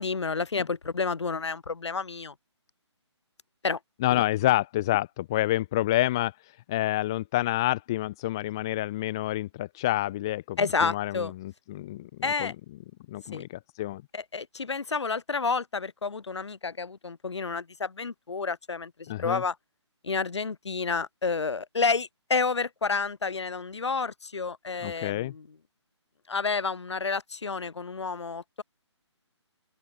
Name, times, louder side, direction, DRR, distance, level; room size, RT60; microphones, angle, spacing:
voice 1, 0.0-2.3 3.6-3.8 10.6-11.3 12.2-12.5 13.3-13.4 14.1-19.5 20.0-25.5 26.3-28.6, left 4 dB, 65° left, 8.0 m, -30 dB
voice 2, 4.0-6.3 6.7-12.1 12.4-12.5 13.1-13.5 13.8-14.0 19.1-19.4 24.8-25.3, left 15 dB, 10° left, 0.6 m, -28 dB
open air
hypercardioid pair, 175°, 15 cm